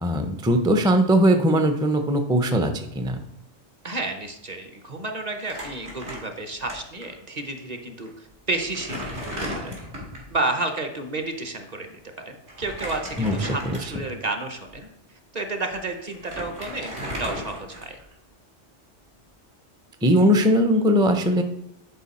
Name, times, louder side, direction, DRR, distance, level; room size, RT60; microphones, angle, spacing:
voice 1, 0.0-3.2 13.2-13.3 13.7-13.8 20.0-21.4, equal, 5° right, 6 dB, 0.4 m, -20 dB
voice 2, 3.8-9.2 9.5-9.8 10.3-12.0 12.3-14.9 15.3-18.0, right 2 dB, 40° right, 5 dB, 0.9 m, -31 dB
Crumpling crinkling, 5.4-6.7 7.0-7.1 8.0-8.1 8.5-10.3 12.5-14.1 14.7-14.8 15.7-15.8 16.0-18.1, equal, 75° right, 2.7 m, -35 dB
10.5 x 4.7 x 4.2 m, 0.79 s
omnidirectional pair, 1.2 m